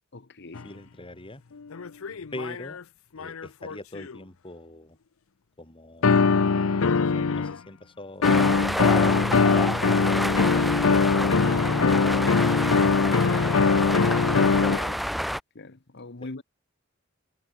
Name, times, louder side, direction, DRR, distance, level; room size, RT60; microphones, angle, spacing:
voice 1, 0.1-0.7 14.6-15.1 15.5-16.4, left 3 dB, 55° left, 1.3 m, -41 dB
sound 1, 0.6-0.7 1.7-2.8 3.2-4.2 6.0-7.6 8.2-14.8, left 4 dB, 70° left, 0.6 m, -22 dB
voice 2, 0.6-1.4 2.3-2.8 3.2-5.0 5.6-6.2 6.7-9.4, left 1 dB, 25° left, 4.6 m, -43 dB
sound 2, 8.2-15.4, equal, ahead, 0.6 m, -29 dB
head